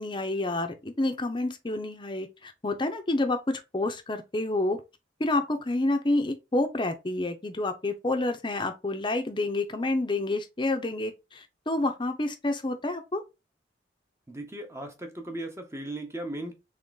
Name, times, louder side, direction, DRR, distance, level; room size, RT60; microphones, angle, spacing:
voice 1, 0.0-4.8 5.2-13.2, left 2 dB, 25° left, 0.7 m, -29 dB
voice 2, 14.3-16.5, right 1 dB, 15° right, 0.9 m, -37 dB
3.6 x 3.6 x 4.0 m
head